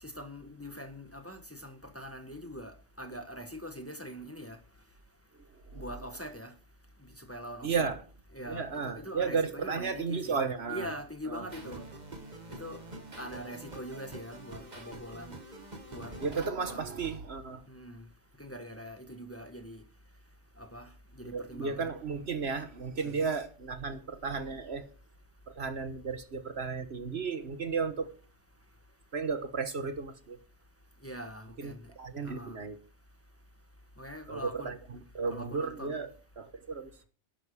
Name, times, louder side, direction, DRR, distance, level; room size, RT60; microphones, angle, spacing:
voice 1, 0.0-4.6 5.7-6.5 7.2-7.9 8.3-10.4 10.7-11.8 12.5-12.8 13.2-15.4 15.9-16.1 16.7-16.9 17.7-18.1 18.4-19.8 20.6-20.9 21.1-21.9 23.0-23.2 31.0-31.8 32.2-32.6 34.0-34.7 35.3-36.0, equal, 10° left, 1.4 m, -43 dB
voice 2, 7.6-8.0 8.5-10.9 11.3-11.4 16.2-17.6 21.3-24.9 25.5-28.1 29.1-30.4 31.6-32.8 34.3-34.8 35.1-36.1 36.4-36.9, right 5 dB, 60° right, 1.5 m, -34 dB
sound 1, 11.5-16.5, right 2 dB, 35° right, 1.9 m, -46 dB
12.0 x 10.5 x 4.9 m
omnidirectional pair, 1.2 m